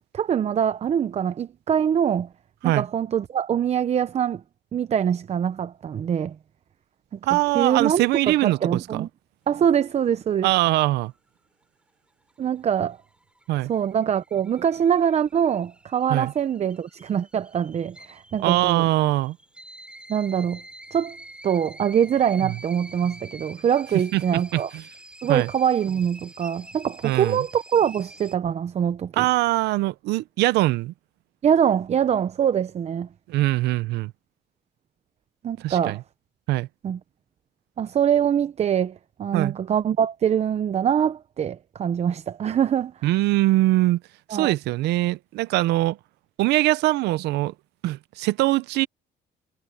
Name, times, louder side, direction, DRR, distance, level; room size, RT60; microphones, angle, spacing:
voice 1, 0.1-2.3 2.6-4.4 4.7-6.4 7.1-9.1 9.5-10.5 12.4-13.0 13.7-18.9 20.1-20.6 20.9-21.2 21.4-24.7 25.2-29.3 31.4-33.1 35.4-36.0 36.8-37.0 37.8-42.9 44.3-44.5, right 8 dB, 40° right, 0.7 m, -24 dB
voice 2, 7.3-9.1 10.4-11.1 13.5-13.7 16.1-16.3 18.4-19.4 22.4-22.5 24.1-24.8 25.3-25.5 27.0-27.4 29.2-30.9 33.3-34.1 35.6-36.0 36.5-36.7 39.3-39.5 43.0-44.0 44.3-46.0 46.4-47.5 47.8-48.9, right 17 dB, 85° right, 0.7 m, -22 dB
sound 1, 12.1-28.4, right 1 dB, 5° right, 6.3 m, -47 dB
cardioid pair, 110°, 17 cm